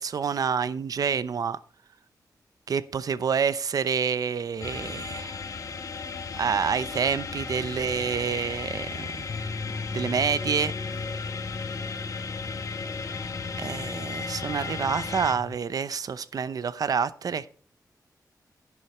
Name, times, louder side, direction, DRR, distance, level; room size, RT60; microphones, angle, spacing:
voice 1, 0.0-1.6 2.7-5.4 6.4-9.3 9.9-10.7 13.6-17.5, right 6 dB, 60° right, 15 dB, 0.7 m, -28 dB
sound 1, 4.6-15.3, left 4 dB, 50° left, 1.3 m, -35 dB
sound 2, 9.3-15.6, left 3 dB, 35° left, 0.7 m, -38 dB
11.0 x 9.7 x 4.3 m, 0.42 s
wide cardioid pair, 165°, 7 cm